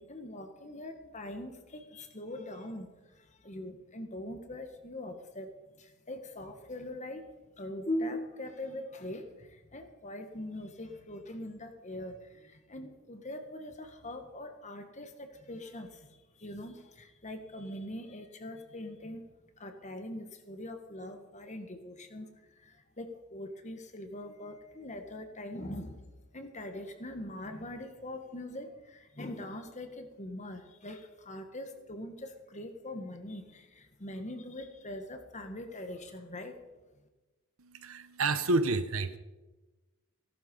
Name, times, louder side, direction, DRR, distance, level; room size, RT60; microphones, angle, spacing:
voice 1, 0.0-7.3 7.6-26.0 26.3-36.6, left 1 dB, 30° left, 6 dB, 1.6 m, -42 dB
voice 2, 37.6-39.2, right 3 dB, 70° right, 11 dB, 1.0 m, -29 dB
17.5 x 12.0 x 5.5 m, 1.2 s
head